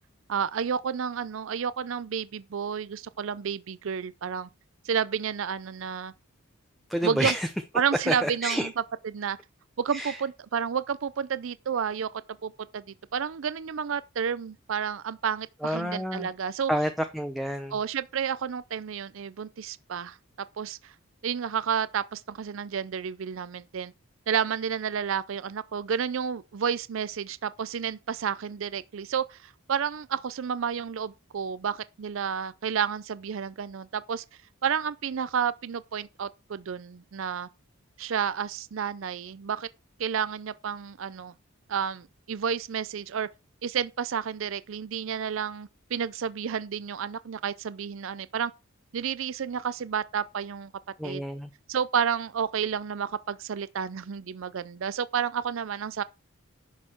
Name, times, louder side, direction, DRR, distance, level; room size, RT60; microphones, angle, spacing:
voice 1, 0.3-4.5 4.8-6.1 7.0-7.3 7.7-8.7 9.0-9.4 9.8-12.1 12.4-12.8 13.1-16.7 17.7-20.2 20.6-20.9 21.2-23.9 24.3-34.2 34.6-37.5 38.0-39.7 40.0-41.3 41.7-43.3 43.6-48.5 48.9-50.7 51.0-51.2 51.7-56.0, right 7 dB, 70° right, 0.4 m, -30 dB
voice 2, 6.9-7.5 8.1-8.7 9.9-10.2 15.6-16.3 16.7-17.7 51.0-51.5, equal, ahead, 0.6 m, -29 dB
11.0 x 6.5 x 4.4 m
head